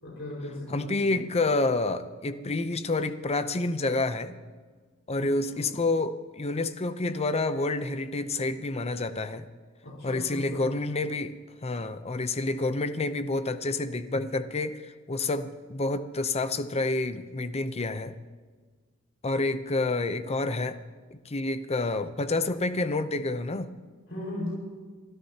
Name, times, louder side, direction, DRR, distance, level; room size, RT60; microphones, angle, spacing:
voice 1, 0.0-1.1 5.2-5.6 9.8-10.7 24.1-24.7, left 1 dB, 65° left, -5 dB, 5.0 m, -37 dB
voice 2, 0.7-4.4 5.1-9.5 10.0-11.3 11.6-18.2 19.2-20.8 21.1-23.7, left 2 dB, 30° left, 11 dB, 0.7 m, -28 dB
25.5 x 13.5 x 2.9 m, 1.5 s
head